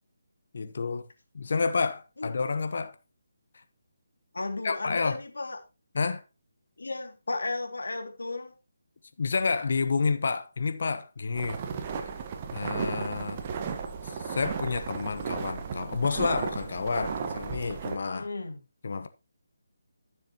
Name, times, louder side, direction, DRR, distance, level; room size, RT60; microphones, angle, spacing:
voice 1, 0.5-1.1 1.3-2.9 3.5-3.6 4.6-5.2 5.9-6.2 9.2-11.6 12.5-13.4 14.0-18.3 18.8-19.1, left 4 dB, 60° left, 1.1 m, -29 dB
voice 2, 4.3-5.6 6.8-8.5 18.1-18.6, left 2 dB, 75° left, 2.4 m, -34 dB
sound 1, 11.3-18.0, right 6 dB, 30° right, 1.3 m, -35 dB
13.5 x 7.0 x 3.0 m
figure-of-eight pair, 155°, 0 cm